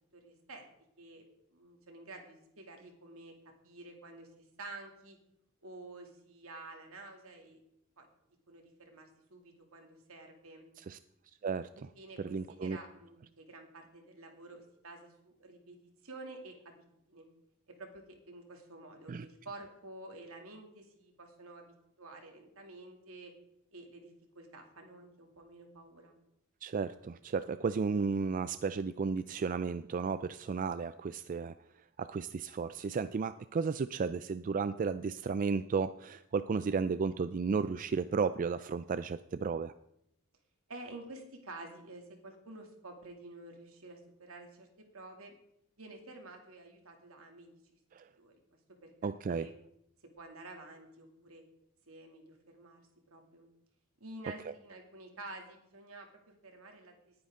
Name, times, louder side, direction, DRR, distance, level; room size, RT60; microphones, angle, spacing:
voice 1, 0.1-0.7 1.0-1.2 1.5-3.3 3.6-5.2 5.6-7.6 8.0-8.1 8.5-10.7 11.7-15.8 16.0-16.7 17.1-17.3 17.7-23.3 23.7-26.2 40.7-44.7 44.9-45.3 45.8-47.8 48.2-48.3 48.8-48.9 49.3-49.5 50.2-51.4 51.9-52.8 53.1-53.5 54.0-56.9, right 2 dB, 75° right, 3 dB, 2.6 m, -50 dB
voice 2, 12.2-12.8 19.1-19.3 26.6-31.5 32.0-39.7 47.9-48.0 49.0-49.5, right 5 dB, 40° right, 13 dB, 0.3 m, -33 dB
19.0 x 9.6 x 3.7 m, 0.78 s
head